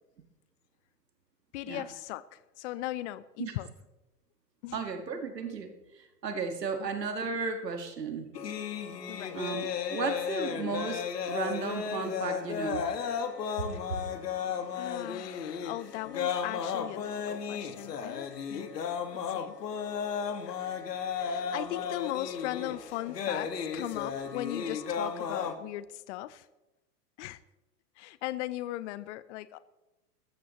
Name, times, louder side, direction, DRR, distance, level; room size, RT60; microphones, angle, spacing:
voice 1, 1.5-3.7 4.6-4.8 6.8-6.9 9.1-9.4 13.7-14.1 14.7-19.6 20.5-20.7 21.2-26.5 27.2-27.4 28.0-29.6, left 15 dB, 45° left, 15 dB, 0.8 m, -38 dB
voice 2, 4.7-8.3 9.3-12.9 13.6-13.7, right 5 dB, 85° right, 6 dB, 1.8 m, -34 dB
sound 1, 8.3-25.5, left 7 dB, 80° left, 2.0 m, -34 dB
21.0 x 14.0 x 3.1 m, 1.0 s
hypercardioid pair, 110°, 48 cm